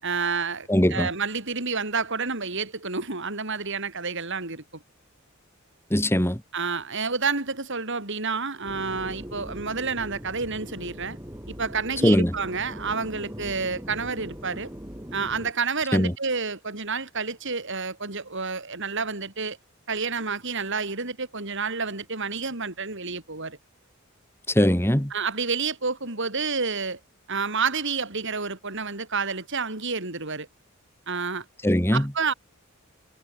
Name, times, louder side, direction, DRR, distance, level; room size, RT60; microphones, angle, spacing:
voice 1, 0.0-4.6 6.5-11.2 11.5-14.7 15.1-19.6 19.9-23.6 25.1-27.0 27.3-30.5 31.1-31.4 31.9-32.3, right 4 dB, 60° right, 4.7 m, -29 dB
voice 2, 0.7-1.1 5.9-6.4 12.0-12.3 15.9-16.1 24.5-25.1 31.6-32.1, equal, 10° left, 2.8 m, -20 dB
sound 1, 8.6-15.5, equal, 10° right, 6.3 m, -40 dB
head